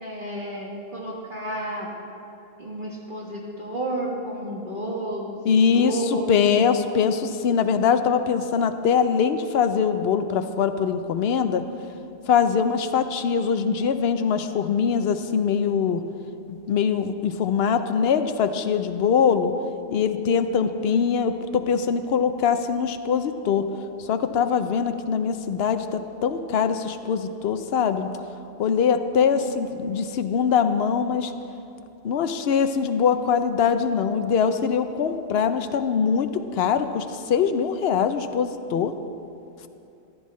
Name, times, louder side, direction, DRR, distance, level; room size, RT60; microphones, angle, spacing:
voice 1, 0.0-1.9 2.6-5.4 5.7-6.3 6.6-6.9 29.1-30.0, right 1 dB, 45° right, -3 dB, 1.4 m, -32 dB
voice 2, 5.5-11.6 12.3-16.0 16.5-19.5 19.9-23.7 24.0-28.1 28.6-31.3 32.0-38.9, left 6 dB, 65° left, 9 dB, 0.7 m, -22 dB
14.5 x 11.0 x 3.1 m, 2.8 s
omnidirectional pair, 1.3 m